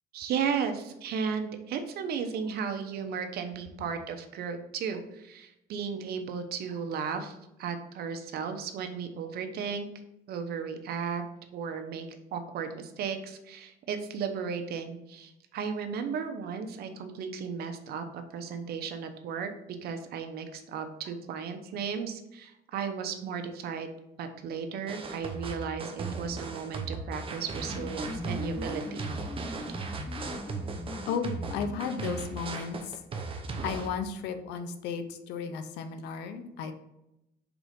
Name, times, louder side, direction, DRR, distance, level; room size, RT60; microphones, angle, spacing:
voice 1, 0.1-9.9 10.3-11.2 11.5-19.5 19.8-23.9 24.2-29.1, right 6 dB, 70° right, 7 dB, 0.8 m, -35 dB
sound 1, 24.9-33.9, right 4 dB, 30° right, 0.8 m, -37 dB
sound 2, 27.4-32.3, left 3 dB, 15° left, 0.5 m, -41 dB
voice 2, 31.1-33.0 33.6-36.7, left 6 dB, 90° left, 9 dB, 0.7 m, -34 dB
4.9 x 3.8 x 5.1 m, 0.88 s
cardioid pair, 110°, 17 cm